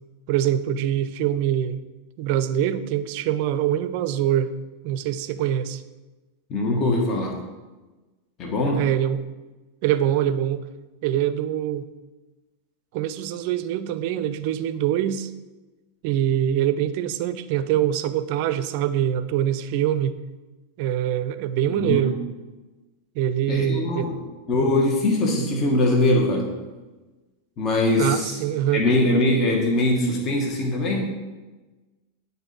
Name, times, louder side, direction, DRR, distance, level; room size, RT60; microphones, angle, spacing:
voice 1, 0.3-1.8 2.2-4.5 4.8-5.8 8.7-9.2 9.8-10.6 11.0-11.9 12.9-15.3 16.0-20.1 20.8-22.2 23.2-24.1 24.6-24.7 28.0-28.8, right 11 dB, 55° right, 13 dB, 0.4 m, -24 dB
voice 2, 6.5-7.4 8.4-8.9 21.7-22.0 23.5-24.2 24.5-26.5 27.6-28.4 28.7-31.1, left 1 dB, 40° left, 0 dB, 1.3 m, -22 dB
8.9 x 4.0 x 4.0 m, 1.2 s
hypercardioid pair, 100°, 0 cm